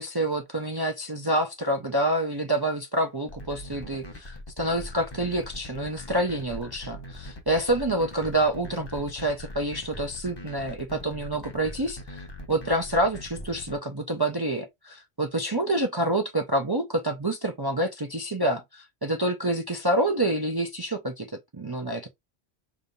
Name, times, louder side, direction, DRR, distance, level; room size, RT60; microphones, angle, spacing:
voice 1, 0.0-22.1, right 1 dB, 35° right, 0.4 m, -27 dB
sound 1, 3.3-13.7, left 1 dB, 25° left, 0.8 m, -41 dB
5.2 x 2.7 x 2.7 m
omnidirectional pair, 1.2 m